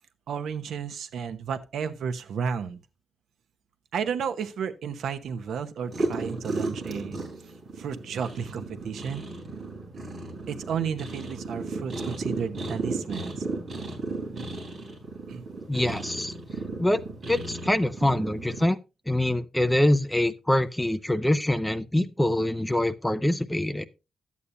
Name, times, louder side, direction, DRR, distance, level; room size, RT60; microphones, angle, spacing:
voice 1, 0.3-2.8 3.9-9.2 10.5-13.5 15.3-15.4, right 7 dB, 80° right, 0.9 m, -32 dB
sound 1, 5.8-18.6, right 2 dB, 35° right, 3.6 m, -35 dB
voice 2, 15.7-16.3 16.8-17.0 17.3-18.8 19.1-23.9, left 1 dB, 5° left, 0.4 m, -24 dB
12.5 x 8.4 x 2.7 m
wide cardioid pair, 160°, 0 cm